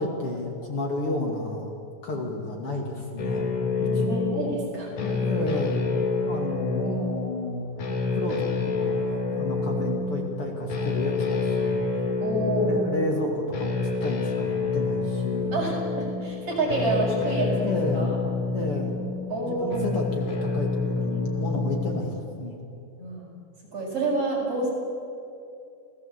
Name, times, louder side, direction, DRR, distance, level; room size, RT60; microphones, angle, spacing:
voice 1, 0.0-1.8 2.0-3.5 3.9-4.2 5.0-5.9 6.3-7.7 8.1-11.8 12.5-15.7 17.6-18.1 18.5-19.0 19.4-22.6, left 2 dB, 45° left, 1 dB, 3.1 m, -31 dB
sound 1, 3.2-22.0, left 3 dB, 80° left, 4.2 m, -28 dB
voice 2, 3.8-4.9 6.7-7.1 12.2-12.8 15.5-18.2 19.3-19.9 23.0-23.3 23.7-24.7, right 2 dB, 50° right, -3 dB, 7.5 m, -28 dB
28.5 x 17.5 x 8.3 m, 2.6 s
omnidirectional pair, 3.5 m